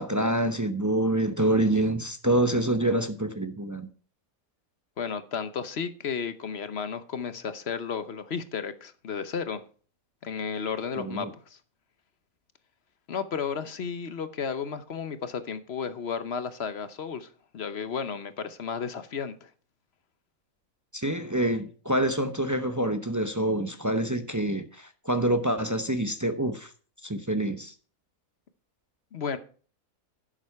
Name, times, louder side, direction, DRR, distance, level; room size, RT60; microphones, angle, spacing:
voice 1, 0.0-3.9 11.0-11.3 20.9-26.7 27.0-27.7, right 1 dB, 20° right, 0.5 m, -26 dB
voice 2, 5.0-9.6 10.2-11.6 13.1-19.5 29.1-29.4, left 6 dB, 50° left, 1.0 m, -33 dB
11.0 x 7.6 x 4.7 m
omnidirectional pair, 1.5 m